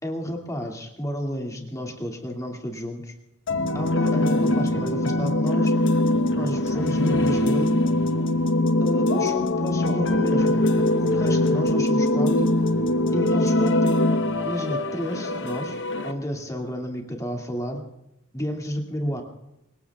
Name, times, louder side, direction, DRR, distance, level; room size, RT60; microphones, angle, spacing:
voice 1, 0.0-3.1 3.7-5.7 6.3-7.8 8.8-10.7 11.0-12.5 13.1-14.0 14.4-15.8 16.0-17.8 18.3-19.2, equal, 15° left, 0 dB, 2.2 m, -31 dB
sound 1, 3.5-16.1, left 1 dB, 60° left, 1.0 m, -22 dB
25.5 x 20.0 x 2.4 m, 0.87 s
head